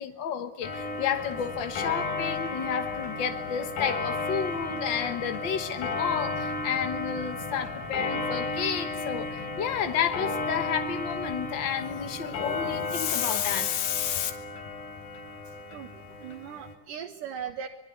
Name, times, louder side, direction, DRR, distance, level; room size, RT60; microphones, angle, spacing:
voice 1, 0.0-14.3, left 8 dB, 60° left, 8 dB, 1.2 m, -31 dB
Clock, 0.6-16.7, left 3 dB, 90° left, 4.8 m, -34 dB
sound 1, 1.1-12.9, right 4 dB, 35° right, 2.6 m, -47 dB
voice 2, 15.5-15.9 16.2-17.7, right 8 dB, 75° right, 3 dB, 2.9 m, -38 dB
26.5 x 20.5 x 9.4 m, 0.83 s
omnidirectional pair, 3.9 m